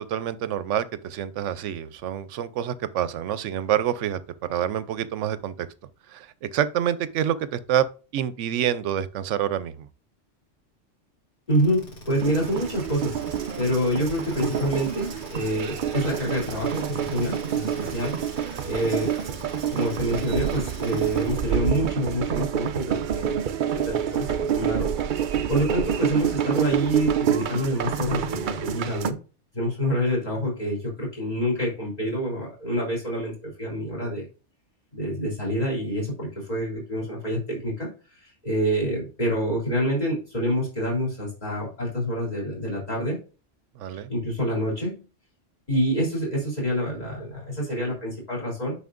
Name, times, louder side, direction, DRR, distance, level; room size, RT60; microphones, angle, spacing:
voice 1, 0.0-4.2 4.5-5.7 6.1-7.9 8.1-9.9 17.8-17.9 43.8-44.1, right 10 dB, 80° right, 0.9 m, -27 dB
sound 1, 11.5-21.7, equal, 65° left, 1.8 m, -42 dB
voice 2, 11.5-13.2 13.6-18.2 18.6-19.1 19.7-29.2 29.5-34.2 34.9-37.9 38.2-43.2 44.1-45.0 45.7-48.7, equal, 35° left, 3.4 m, -27 dB
sound 2, 12.2-29.1, right 9 dB, 60° right, 0.5 m, -28 dB
9.3 x 6.0 x 2.5 m
omnidirectional pair, 1.2 m